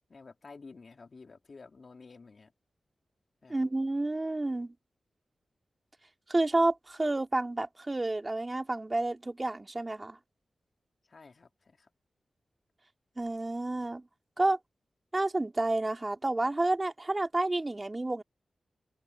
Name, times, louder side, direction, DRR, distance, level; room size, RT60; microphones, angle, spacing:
voice 1, 0.1-2.5 3.4-3.7 11.1-11.9, left 4 dB, 55° left, 3.3 m, -51 dB
voice 2, 3.5-4.7 6.3-10.2 13.2-14.0 14.4-14.6 15.1-18.2, right 2 dB, 30° right, 2.9 m, -30 dB
open air
cardioid pair, 65°, 0 cm